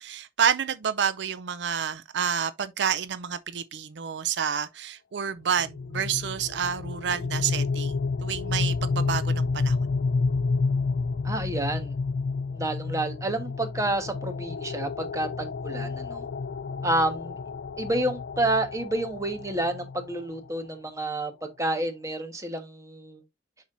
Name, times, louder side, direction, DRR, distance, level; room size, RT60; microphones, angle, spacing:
voice 1, 0.0-9.8, right 7 dB, 80° right, 0.5 m, -29 dB
sound 1, 5.6-20.5, left 4 dB, 80° left, 0.4 m, -30 dB
voice 2, 11.2-11.9 12.5-16.3 16.8-17.3 17.8-23.2, right 1 dB, 20° right, 1.3 m, -29 dB
7.1 x 5.8 x 2.6 m
head